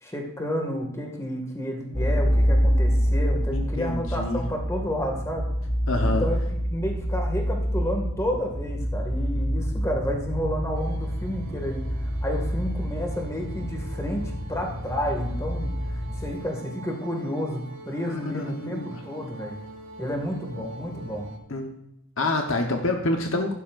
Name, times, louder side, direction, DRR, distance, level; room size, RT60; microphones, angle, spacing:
voice 1, 0.0-5.5 6.0-6.4 6.7-19.6 20.0-21.3, equal, 15° left, 1 dB, 2.0 m, -31 dB
sound 1, 1.9-16.3, equal, 30° left, 2.7 m, -27 dB
voice 2, 3.5-4.4 5.9-6.3 18.1-19.0 21.5-21.8 22.2-23.5, left 2 dB, 60° left, 3 dB, 1.1 m, -27 dB
sound 2, 10.7-21.4, right 1 dB, 90° right, 2.0 m, -45 dB
15.0 x 12.0 x 2.6 m, 0.81 s
head